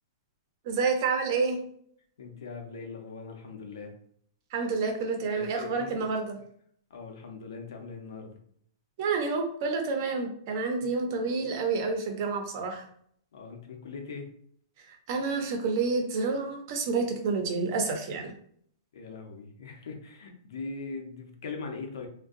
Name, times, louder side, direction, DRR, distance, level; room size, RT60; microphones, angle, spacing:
voice 1, 0.6-1.6 4.5-6.4 9.0-12.8 14.9-18.3, right 4 dB, 45° right, 3 dB, 0.7 m, -29 dB
voice 2, 2.2-3.9 5.3-6.1 6.9-8.4 10.8-10.9 13.3-14.3 18.9-22.1, left 4 dB, 85° left, 3 dB, 0.8 m, -41 dB
3.7 x 2.2 x 2.6 m, 0.65 s
hypercardioid pair, 155°, 2 cm